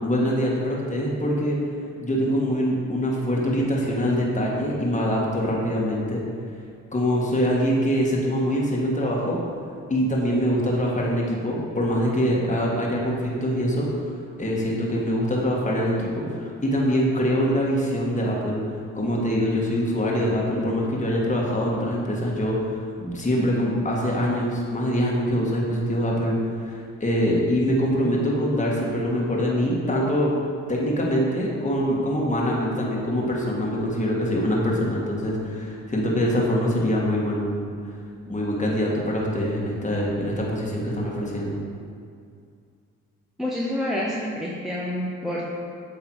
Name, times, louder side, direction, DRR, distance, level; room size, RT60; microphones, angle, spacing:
voice 1, 0.0-1.6 2.0-6.2 6.9-9.4 9.9-18.6 18.9-22.6 23.0-26.3 26.6-30.3 30.7-37.8 38.3-41.6, equal, 20° left, -3 dB, 1.5 m, -24 dB
voice 2, 43.4-45.5, left 1 dB, ahead, -5 dB, 0.9 m, -28 dB
8.1 x 3.2 x 4.6 m, 2.3 s
supercardioid pair, 55°, 33 cm